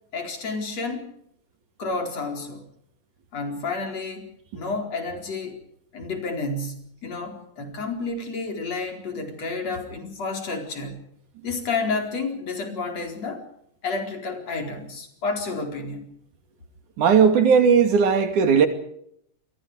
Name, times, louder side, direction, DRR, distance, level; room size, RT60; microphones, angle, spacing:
voice 1, 0.1-1.1 1.8-2.6 3.3-5.6 5.9-11.1 11.4-13.5 13.8-16.1, left 3 dB, 60° left, 5.5 m, -30 dB
voice 2, 17.0-18.7, right 6 dB, 90° right, 4.0 m, -17 dB
28.5 x 23.0 x 4.9 m
omnidirectional pair, 3.4 m